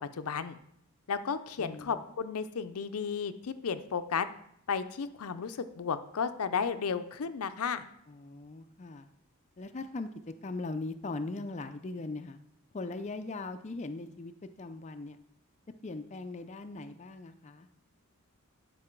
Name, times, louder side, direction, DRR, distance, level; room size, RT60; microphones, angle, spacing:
voice 1, 0.2-0.6 1.1-4.3 4.7-7.8, left 6 dB, 85° left, 11 dB, 0.6 m, -33 dB
voice 2, 1.6-2.0 8.1-9.1 9.6-10.1 10.4-12.4 12.7-14.3 14.6-15.2 15.8-17.7, left 3 dB, 30° left, 8 dB, 0.4 m, -39 dB
11.5 x 5.3 x 4.5 m, 0.74 s
head